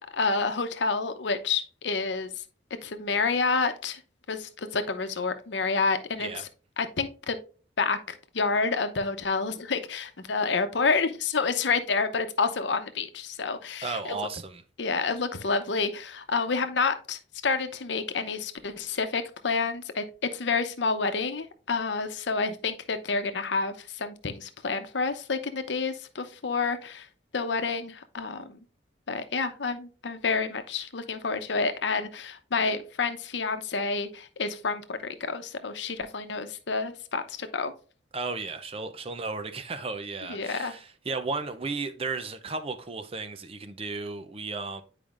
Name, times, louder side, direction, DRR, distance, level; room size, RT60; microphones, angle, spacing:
voice 1, 0.1-2.3 2.8-4.0 4.3-6.3 6.8-7.4 7.8-14.3 14.8-27.1 27.3-28.6 29.1-37.7 40.3-40.8, left 4 dB, 75° left, 0.8 m, -29 dB
voice 2, 13.8-14.6 38.1-44.8, right 3 dB, 30° right, 0.6 m, -34 dB
8.8 x 4.9 x 2.5 m
head